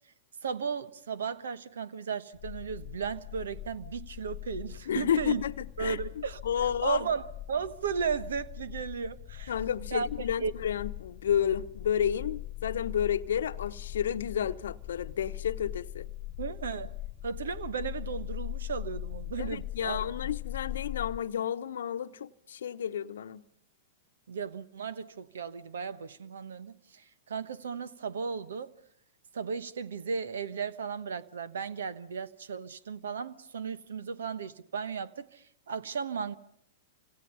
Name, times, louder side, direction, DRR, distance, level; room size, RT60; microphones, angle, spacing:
voice 1, 0.4-5.4 5.8-9.5 9.9-10.1 10.4-10.5 16.4-16.9 17.2-20.1 24.3-28.7 29.3-36.4, right 6 dB, 75° right, 1.2 m, -35 dB
sound 1, 2.3-21.2, left 15 dB, 40° left, 1.0 m, -41 dB
voice 2, 4.9-7.1 9.5-16.1 19.4-23.4, left 9 dB, 70° left, 0.9 m, -31 dB
29.0 x 26.5 x 5.6 m
hypercardioid pair, 105°, 0 cm